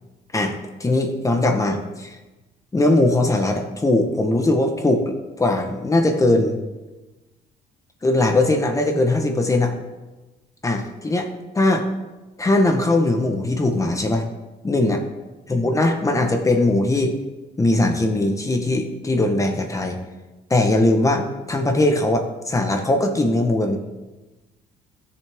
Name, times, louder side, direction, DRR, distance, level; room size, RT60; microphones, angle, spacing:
voice 1, 0.8-2.2 2.7-6.6 8.0-9.7 10.6-11.3 11.5-11.9 12.4-14.2 14.6-15.0 15.5-17.1 17.6-20.0 20.5-23.8, left 2 dB, 20° left, 4 dB, 1.2 m, -20 dB
15.0 x 6.9 x 3.6 m, 1.1 s
cardioid pair, 110°, 17 cm